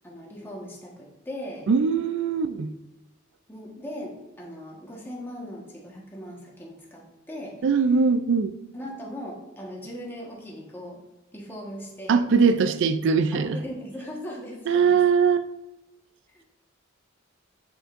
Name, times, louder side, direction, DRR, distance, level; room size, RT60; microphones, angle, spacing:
voice 1, 0.0-1.7 3.5-7.6 8.7-11.0 11.3-12.2 13.3-15.0 16.3-16.4, equal, 10° left, -3 dB, 1.3 m, -39 dB
voice 2, 1.7-2.7 7.6-8.5 12.1-13.6 14.7-15.5, right 5 dB, 60° right, 12 dB, 0.4 m, -21 dB
7.4 x 7.1 x 2.5 m, 0.99 s
head